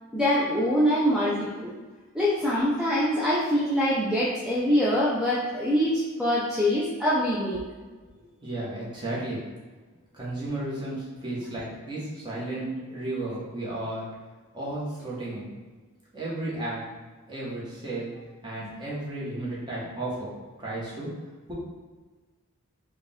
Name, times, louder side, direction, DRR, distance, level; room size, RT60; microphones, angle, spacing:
voice 1, 0.1-1.7 2.1-7.6, equal, 5° right, -8 dB, 0.5 m, -24 dB
voice 2, 8.4-9.4 10.1-14.1 14.5-15.5 16.1-16.8 17.3-18.1 18.4-20.3 20.6-21.1, right 2 dB, 20° right, -7 dB, 1.2 m, -33 dB
4.6 x 2.3 x 3.5 m, 1.3 s
head